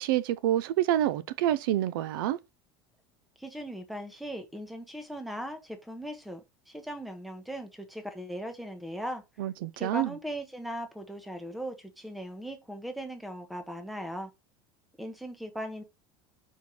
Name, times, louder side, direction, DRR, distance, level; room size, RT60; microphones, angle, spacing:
voice 1, 0.0-2.4 9.4-10.1, right 13 dB, 75° right, 0.6 m, -27 dB
voice 2, 3.4-9.2 9.8-14.3 15.0-15.8, equal, ahead, 0.8 m, -38 dB
4.6 x 4.5 x 5.3 m
cardioid pair, 175°, 11 cm